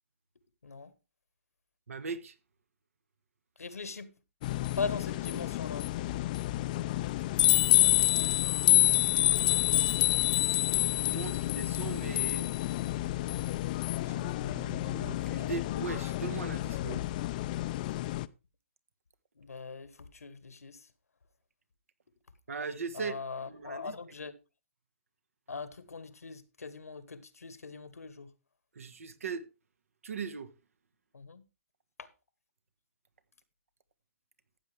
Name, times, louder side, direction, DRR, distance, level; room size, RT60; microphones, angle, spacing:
voice 1, 1.9-2.3 8.7-9.4 9.9-10.3 10.9-12.4 14.1-17.0 22.5-23.2 23.5-23.9 28.7-29.4 30.0-30.5, right 5 dB, 70° right, 1.7 m, -40 dB
voice 2, 3.6-4.1 4.8-5.9 19.4-20.9 22.9-24.3 25.5-28.3 31.1-31.4 32.0-32.1, left 4 dB, 90° left, 1.4 m, -40 dB
sound 1, 4.4-18.2, left 16 dB, 35° left, 0.5 m, -28 dB
14.5 x 8.2 x 3.4 m
hypercardioid pair, 145°, 8 cm